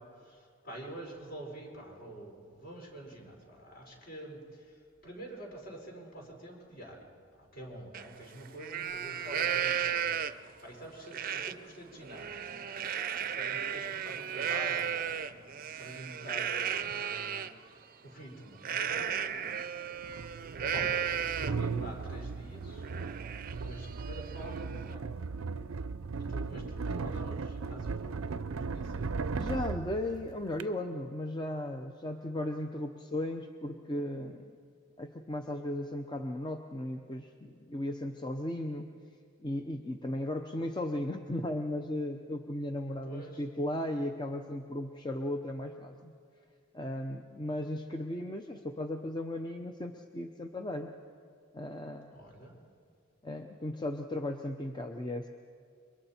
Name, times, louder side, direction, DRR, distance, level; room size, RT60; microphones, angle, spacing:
voice 1, 0.0-7.1 7.4-10.1 10.3-12.5 13.1-19.4 20.6-22.8 23.6-25.1 26.2-29.1 43.0-43.4 52.1-52.6, right 1 dB, 50° left, -1 dB, 4.8 m, -47 dB
Livestock farm animals working animals, 7.9-8.0 8.5-10.5 11.1-11.5 11.9-17.5 18.6-21.7 22.1-22.2 22.6-24.9, right 8 dB, 45° right, 0.5 m, -34 dB
sound 1, 19.0-19.1 20.0-30.6, right 4 dB, 85° right, 0.5 m, -37 dB
voice 2, 29.3-34.4 35.0-38.9 39.4-46.1 46.7-50.9 51.5-52.2 53.2-55.3, left 1 dB, 20° left, 5 dB, 0.7 m, -36 dB
28.0 x 23.5 x 4.4 m, 2.3 s
head